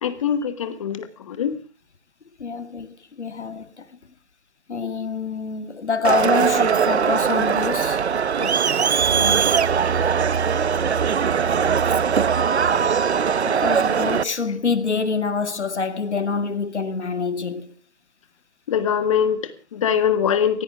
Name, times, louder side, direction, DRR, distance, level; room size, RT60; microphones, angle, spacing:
voice 1, 0.0-1.6 8.4-8.5 18.7-20.6, left 8 dB, 30° left, 1.5 m, -23 dB
voice 2, 2.4-3.9 4.7-8.0 9.1-9.5 10.1-10.2 12.7-12.9 13.4-17.7, left 5 dB, 80° left, 2.1 m, -26 dB
Crowd, 6.0-14.2, right 6 dB, 70° right, 0.9 m, -20 dB
20.0 x 16.5 x 3.6 m
hypercardioid pair, 160°, 34 cm